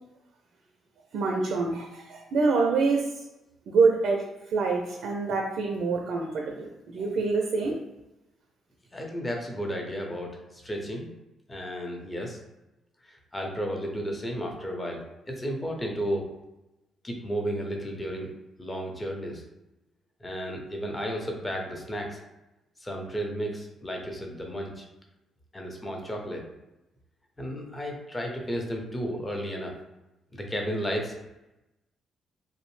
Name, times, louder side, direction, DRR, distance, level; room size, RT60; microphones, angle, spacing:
voice 1, 1.1-3.3 3.7-7.8, right 4 dB, 70° right, 1 dB, 0.4 m, -26 dB
voice 2, 8.9-11.1 11.5-12.4 13.0-16.3 17.0-18.3 18.6-19.4 20.2-22.2 22.8-24.9 25.5-26.4 27.4-29.7 30.3-31.1, equal, 20° left, 1 dB, 0.6 m, -33 dB
2.6 x 2.0 x 3.1 m, 0.96 s
cardioid pair, 90°, 0 cm